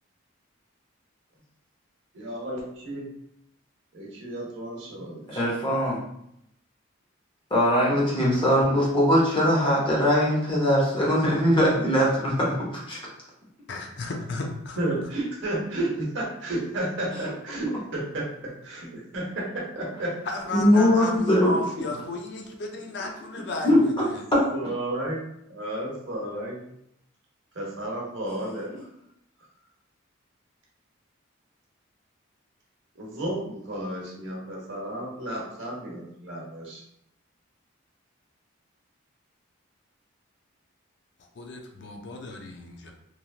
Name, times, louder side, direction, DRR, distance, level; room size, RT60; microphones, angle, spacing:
voice 1, 2.2-3.1 3.9-5.4 14.8-18.2 18.6-20.1 21.8-22.0 23.4-23.5 24.5-26.6 27.5-28.7 33.0-36.8, right 1 dB, 65° right, -3 dB, 0.9 m, -32 dB
voice 2, 5.3-6.0 7.5-12.4 12.7-13.0 20.5-21.6 23.6-23.8, equal, 25° left, -5 dB, 0.8 m, -21 dB
voice 3, 13.7-14.8 20.2-24.2 41.4-42.9, left 2 dB, 55° left, 2 dB, 0.4 m, -34 dB
3.1 x 2.5 x 2.3 m, 0.77 s
head